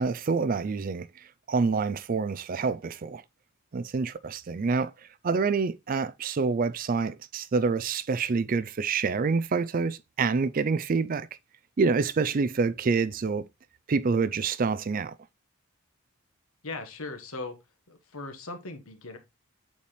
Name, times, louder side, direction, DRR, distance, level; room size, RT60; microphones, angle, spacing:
voice 1, 0.0-3.2 3.7-4.9 5.2-11.3 11.8-13.4 13.9-15.1, right 4 dB, 40° right, 0.4 m, -27 dB
voice 2, 16.6-17.6 17.9-19.2, left 3 dB, 75° left, 1.3 m, -38 dB
8.3 x 4.3 x 3.2 m
head